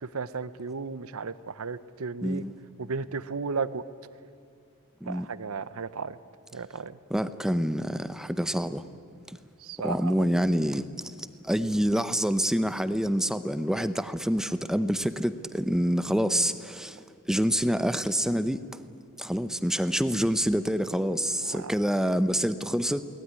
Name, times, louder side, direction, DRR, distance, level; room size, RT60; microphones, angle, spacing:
voice 1, 0.0-2.4 2.8-3.8 5.1-6.2 6.5-7.0 9.6-10.3 21.4-21.7, right 4 dB, 70° right, 16 dB, 0.7 m, -34 dB
voice 2, 2.2-2.5 5.0-5.3 7.1-8.8 9.3-9.4 9.8-18.6 19.2-23.0, equal, ahead, 12 dB, 0.7 m, -27 dB
23.0 x 18.5 x 9.6 m, 2.4 s
head